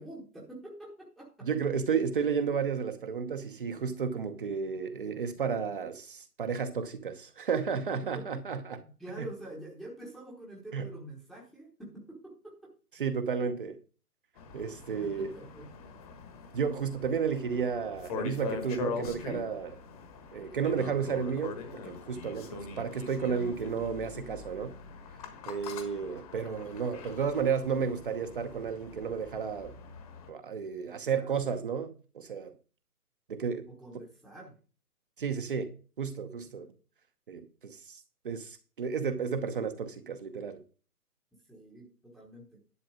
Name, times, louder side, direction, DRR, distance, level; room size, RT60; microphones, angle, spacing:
voice 1, 0.0-1.5 8.1-8.4 8.8-12.7 14.9-15.7 22.4-22.6 31.0-31.4 33.7-34.5 41.5-42.6, right 1 dB, ahead, 1.1 m, -46 dB
voice 2, 1.4-8.8 9.1-9.3 10.7-10.9 13.0-13.8 14.5-15.3 16.5-19.8 20.3-24.7 25.5-29.7 30.3-32.5 33.3-33.7 33.9-34.0 35.2-36.7 37.3-40.6, right 6 dB, 35° right, 0.9 m, -32 dB
sound 1, 14.4-30.3, left 5 dB, 25° left, 1.4 m, -43 dB
11.0 x 6.3 x 4.9 m
figure-of-eight pair, 140°, 46 cm